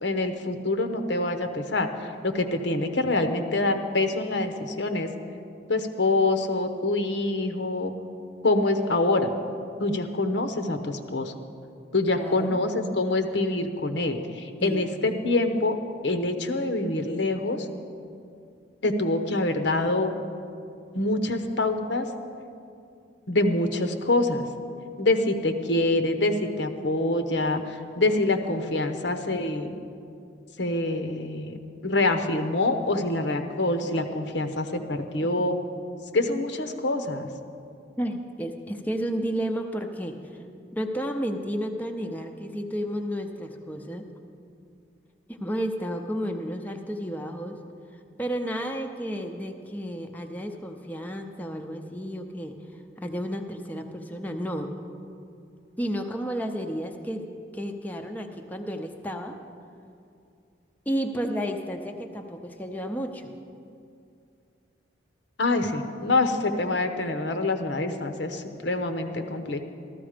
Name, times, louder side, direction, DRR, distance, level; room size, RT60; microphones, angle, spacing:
voice 1, 0.0-5.1 5.7-7.9 8.4-9.3 9.8-11.3 11.9-15.7 16.0-17.7 18.8-20.1 20.9-22.1 23.3-24.4 25.0-29.7 30.6-35.6 36.1-37.3 65.4-69.6, left 2 dB, 75° left, 7 dB, 0.9 m, -25 dB
voice 2, 12.2-12.6 14.6-14.9 35.2-35.3 38.0-40.2 40.7-44.1 45.3-47.6 48.2-52.6 53.0-54.8 55.8-59.4 60.9-63.3, equal, 10° left, 3 dB, 0.6 m, -32 dB
14.0 x 13.5 x 5.0 m, 2.5 s
head